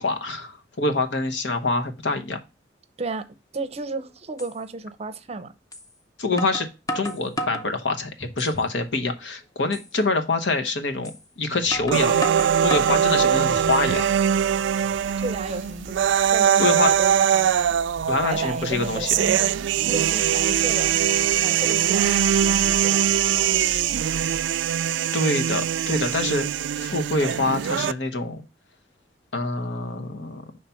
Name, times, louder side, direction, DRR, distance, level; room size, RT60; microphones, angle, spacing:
voice 1, 0.0-2.4 6.2-6.7 6.9-11.1 11.4-12.2 12.6-14.1 16.6-16.9 18.1-19.1 25.1-26.5 26.7-28.4 29.3-30.4, left 3 dB, 80° left, 1.0 m, -25 dB
voice 2, 3.5-5.5 15.2-17.8 18.2-19.5 19.9-21.0 21.4-23.0, right 3 dB, 35° right, 0.6 m, -33 dB
sound 1, 3.8-3.9 4.4-4.5 5.7-5.9 6.4-7.7 8.2-8.7 9.1-9.2 9.7-9.9 11.0-11.2 11.7-13.0 13.5-14.1, equal, 20° left, 0.6 m, -32 dB
sound 2, 11.6-24.4, equal, 40° left, 1.7 m, -42 dB
sound 3, 11.9-27.9, right 9 dB, 90° right, 0.3 m, -22 dB
5.6 x 3.3 x 5.6 m
head